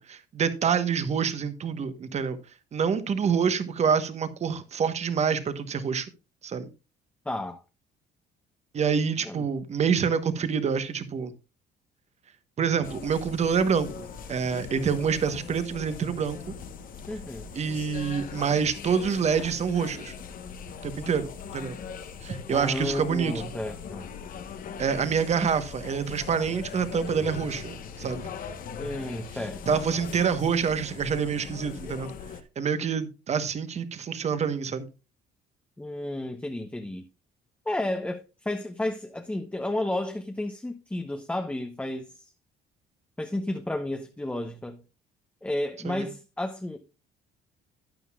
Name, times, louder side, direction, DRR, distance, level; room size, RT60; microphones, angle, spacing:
voice 1, 0.0-2.4 2.7-6.1 6.4-6.7 8.7-11.3 12.6-16.5 17.5-20.1 20.8-21.8 22.2-23.3 24.8-28.3 29.7-32.1 32.6-34.9 45.8-46.1, right 6 dB, 40° right, 1.2 m, -27 dB
voice 2, 7.3-7.6 9.2-9.5 17.1-17.5 22.5-24.1 28.8-29.8 35.8-37.0 37.7-42.3 43.2-44.8 45.4-46.8, left 1 dB, 10° left, 0.8 m, -32 dB
sound 1, 12.8-32.4, left 6 dB, 55° left, 1.1 m, -40 dB
13.0 x 9.3 x 2.4 m
cardioid pair, 110°, 17 cm